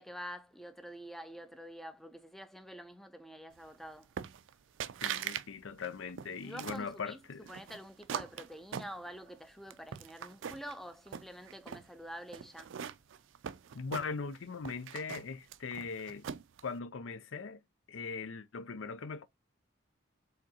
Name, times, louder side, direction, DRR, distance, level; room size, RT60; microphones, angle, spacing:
voice 1, 0.0-4.1 6.4-7.2 7.5-12.7, equal, ahead, 0.4 m, -47 dB
sound 1, 4.2-4.5 4.8-5.5 5.8-6.9 7.5-9.3 9.7-10.7 11.1-11.9 12.3-14.4 14.6-16.6, right 8 dB, 65° right, 0.4 m, -41 dB
voice 2, 5.0-7.5 13.7-16.3 16.6-17.6 17.9-19.2, left 5 dB, 70° left, 0.5 m, -40 dB
5.0 x 3.6 x 2.8 m
head